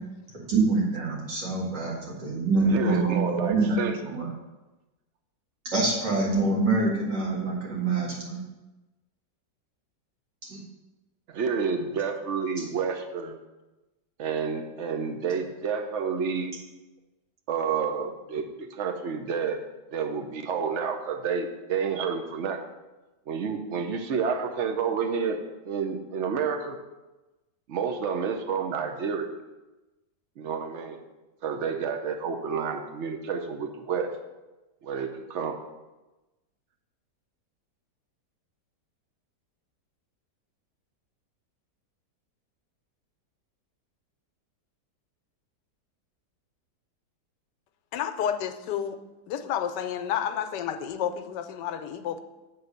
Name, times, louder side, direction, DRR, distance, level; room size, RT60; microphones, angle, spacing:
voice 1, 0.3-4.3 5.6-8.4 10.5-10.6, right 3 dB, 85° right, -4 dB, 2.7 m, -26 dB
voice 2, 2.6-4.2 11.3-13.4 14.2-16.5 17.5-19.6 19.9-22.6 23.3-25.4 25.7-26.8 27.7-29.3 30.4-31.0 31.4-34.1 34.8-35.6, right 6 dB, 55° right, 5 dB, 0.9 m, -29 dB
voice 3, 47.9-49.0 49.3-52.2, left 9 dB, 85° left, 8 dB, 1.2 m, -30 dB
8.0 x 3.8 x 6.6 m, 1.1 s
omnidirectional pair, 1.9 m